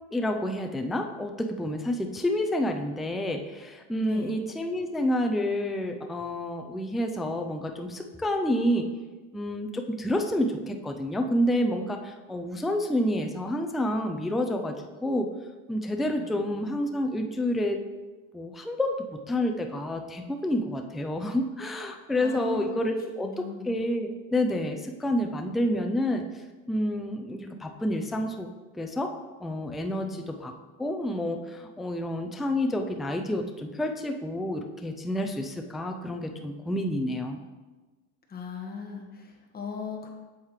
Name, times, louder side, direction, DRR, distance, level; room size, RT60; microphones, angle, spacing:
voice 1, 0.1-8.9 9.3-15.3 15.7-17.8 18.3-19.0 19.3-26.2 26.7-28.5 28.7-29.1 29.4-30.5 30.8-37.4, left 1 dB, ahead, 4 dB, 0.3 m, -29 dB
voice 2, 4.0-4.4 16.2-16.8 22.2-23.0 23.2-23.7 30.0-30.3 38.3-40.1, left 4 dB, 25° left, 0 dB, 1.5 m, -39 dB
8.3 x 7.3 x 3.2 m, 1.2 s
supercardioid pair, 125°, 40 cm